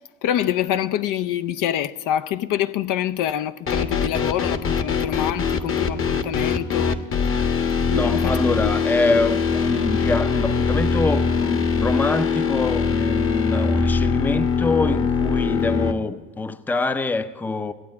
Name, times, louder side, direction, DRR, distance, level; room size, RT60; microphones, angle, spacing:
voice 1, 0.2-7.0 7.8-8.4 8.6-8.7, left 11 dB, 60° left, 0.6 m, -25 dB
sound 1, 3.7-15.9, left 5 dB, 35° left, 1.1 m, -22 dB
voice 2, 7.9-17.7, left 3 dB, 5° left, 0.5 m, -25 dB
15.5 x 8.5 x 9.3 m
supercardioid pair, 75°, 36 cm